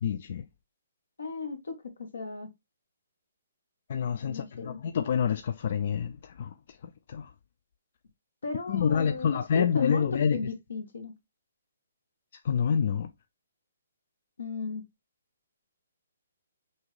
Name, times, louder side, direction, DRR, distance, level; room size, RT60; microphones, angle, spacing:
voice 1, 0.0-0.4 3.9-6.5 7.1-7.3 8.7-10.4 12.4-13.1, left 7 dB, 55° left, 0.3 m, -27 dB
voice 2, 1.2-2.5 4.3-4.8 8.4-11.1 14.4-14.8, left 4 dB, 80° left, 1.3 m, -35 dB
6.2 x 2.5 x 3.1 m
hypercardioid pair, 140°, 0 cm